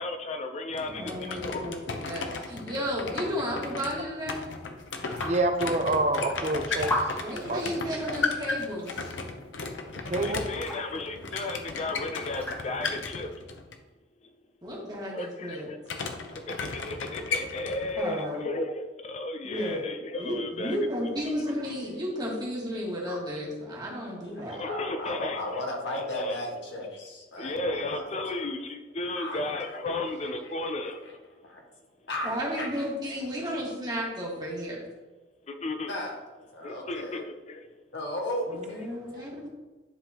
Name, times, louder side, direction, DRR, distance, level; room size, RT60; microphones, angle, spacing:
voice 1, 0.0-1.7 10.0-13.5 14.2-14.3 15.1-15.8 16.9-20.8 21.4-21.5 24.5-25.6 25.9-26.4 27.4-31.0 35.5-35.9 36.6-37.7, left 2 dB, 35° left, 7 dB, 0.4 m, -34 dB
sound 1, 0.7-13.8 15.9-18.0, left 4 dB, 85° left, 0.7 m, -35 dB
voice 2, 0.9-4.4 7.2-9.2 14.6-15.7 18.0-18.4 19.4-19.8 20.2-24.6 32.2-34.9 38.5-39.5, equal, 20° right, -4 dB, 1.6 m, -33 dB
sound 2, 4.6-13.1, left 1 dB, 15° left, 1.4 m, -39 dB
voice 3, 5.2-6.9 7.5-7.6 10.1-10.4, right 2 dB, 40° right, 5 dB, 0.6 m, -26 dB
voice 4, 24.2-28.0 29.1-29.6 30.3-30.7 31.4-31.6 32.1-32.8 35.9-36.2 36.5-37.2 37.9-39.2, left 1 dB, 70° left, -1 dB, 1.5 m, -36 dB
10.5 x 3.6 x 2.8 m, 1.2 s
head